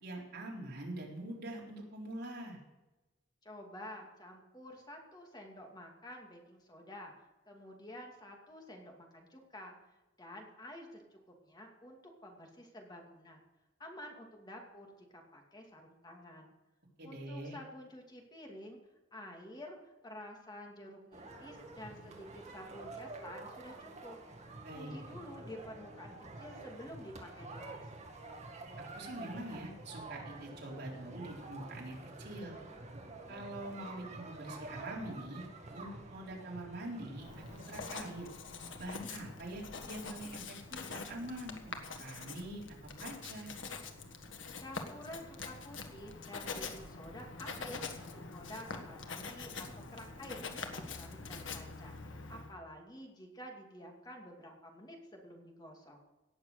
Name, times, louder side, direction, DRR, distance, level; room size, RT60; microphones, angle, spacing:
voice 1, 0.0-2.6 17.0-17.6 24.6-25.0 28.9-32.6 33.3-35.4 35.7-38.3 38.8-43.5, right 1 dB, 60° right, -3 dB, 4.2 m, -44 dB
voice 2, 3.4-7.1 7.5-9.8 10.2-13.4 13.8-16.5 17.0-18.8 19.1-24.2 24.7-27.8 44.6-50.4 50.8-52.0 52.3-56.0, left 1 dB, 20° left, 1 dB, 2.6 m, -50 dB
sound 1, 21.1-37.9, right 2 dB, 40° right, 2.1 m, -49 dB
Writing, 37.2-52.6, left 4 dB, 90° left, 1.5 m, -45 dB
18.0 x 7.1 x 6.7 m, 1.0 s
head